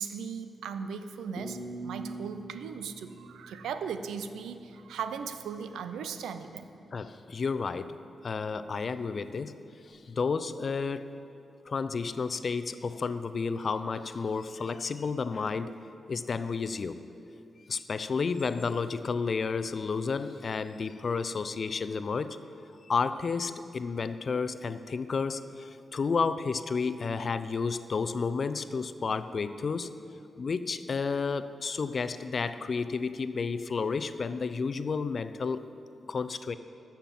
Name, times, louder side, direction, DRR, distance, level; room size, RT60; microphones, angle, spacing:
voice 1, 0.0-6.7, right 6 dB, 90° right, 9 dB, 0.5 m, -37 dB
sound 1, 1.4-4.3, right 2 dB, 5° left, 1.3 m, -43 dB
voice 2, 6.9-8.0 8.2-9.5 9.9-11.2 11.7-15.8 16.1-17.0 17.7-22.4 22.9-29.9 30.4-35.6 36.1-36.6, left 5 dB, 55° left, 12 dB, 0.5 m, -31 dB
13.0 x 5.8 x 7.5 m, 2.6 s
cardioid pair, 55°, 0 cm